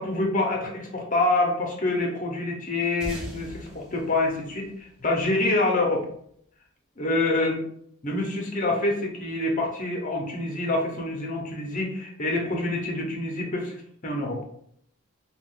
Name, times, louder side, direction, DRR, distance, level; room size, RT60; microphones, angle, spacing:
voice 1, 0.0-6.1 7.0-7.6 8.0-13.7 14.0-14.4, left 2 dB, 35° left, 0 dB, 0.7 m, -26 dB
sound 1, 3.0-5.8, equal, 5° right, 0.6 m, -41 dB
2.4 x 2.2 x 3.6 m, 0.66 s
head